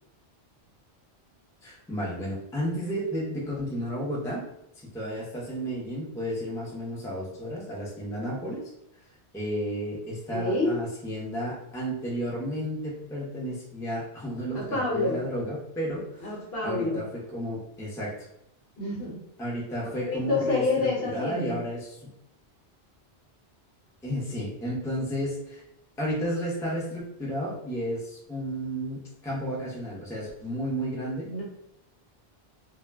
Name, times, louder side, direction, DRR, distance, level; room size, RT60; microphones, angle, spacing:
voice 1, 1.6-4.4 4.9-8.6 9.3-16.3 16.6-17.0 17.3-18.3 19.4-20.6 21.1-21.9 24.0-25.6 26.0-31.3, equal, 5° left, -5 dB, 0.5 m, -32 dB
voice 2, 10.3-10.8 14.5-15.2 16.2-17.0 18.8-19.2 20.0-21.6 31.3-31.4, left 3 dB, 65° left, -2 dB, 1.0 m, -28 dB
2.2 x 2.1 x 3.3 m, 0.78 s
omnidirectional pair, 1.1 m